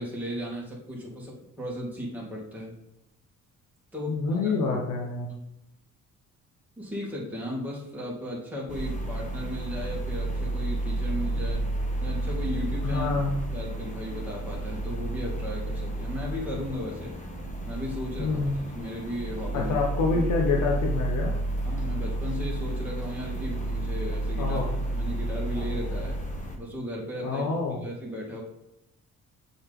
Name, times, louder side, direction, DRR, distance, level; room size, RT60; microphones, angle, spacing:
voice 1, 0.0-2.7 3.9-4.5 6.8-11.6 12.0-13.1 13.5-17.1 17.7-18.4 18.7-19.8 21.6-24.6 24.9-26.2 26.6-27.5 27.8-28.4, left 1 dB, 5° right, -5 dB, 2.2 m, -35 dB
voice 2, 4.1-5.3 12.8-13.4 18.2-18.6 19.5-21.3 24.4-24.7 27.2-27.8, left 4 dB, 80° left, -1 dB, 1.0 m, -27 dB
sound 1, 8.7-26.6, right 1 dB, 25° left, 1.4 m, -31 dB
6.9 x 4.0 x 3.7 m, 0.86 s
cardioid pair, 90°, 30 cm